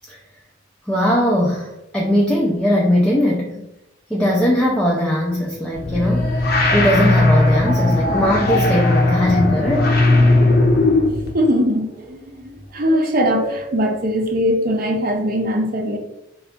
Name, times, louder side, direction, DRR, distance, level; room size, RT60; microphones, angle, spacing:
voice 1, 0.9-3.6 4.1-6.3 6.7-9.9, equal, 5° left, -4 dB, 0.4 m, -19 dB
sound 1, 5.7-11.3, left 2 dB, 50° left, 0.6 m, -17 dB
voice 2, 11.2-16.0, equal, 50° right, 4 dB, 0.6 m, -21 dB
3.4 x 2.3 x 3.6 m, 0.88 s
head